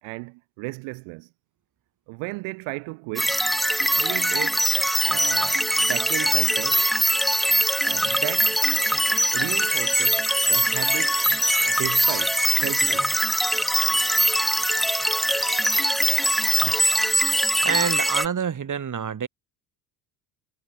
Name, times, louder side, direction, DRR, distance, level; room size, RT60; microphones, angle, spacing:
voice 1, 0.0-1.3 2.1-3.4 3.9-4.6 5.0-6.8 7.8-8.6 9.3-11.2 11.7-13.1 16.7-16.8, right 29 dB, 80° right, 3.4 m, -34 dB
sound 1, 3.2-18.3, equal, ahead, 2.2 m, -22 dB
voice 2, 17.6-19.3, right 7 dB, 40° right, 5.2 m, -27 dB
supercardioid pair, 80°, 47 cm